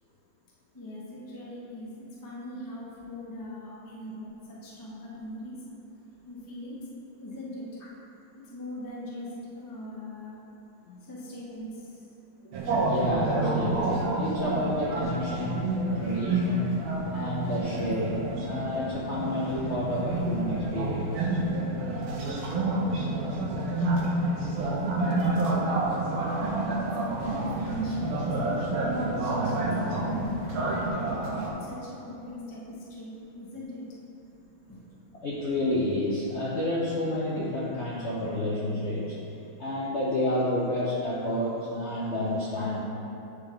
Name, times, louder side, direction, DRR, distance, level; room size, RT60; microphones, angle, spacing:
voice 1, 0.7-5.6 6.3-6.8 7.2-7.7 8.4-10.4 11.0-12.1 27.2-30.9 31.5-33.9 34.6-35.2, left 1 dB, 20° left, -7 dB, 0.6 m, -41 dB
voice 2, 12.4-16.8 17.1-21.3 24.1-24.2 26.6-26.7 35.2-39.2 39.6-42.8, left 1 dB, 90° left, -6 dB, 0.6 m, -30 dB
sound 1, 12.5-31.5, right 2 dB, 80° right, 1.7 m, -29 dB
9.7 x 3.6 x 3.3 m, 2.8 s
omnidirectional pair, 2.2 m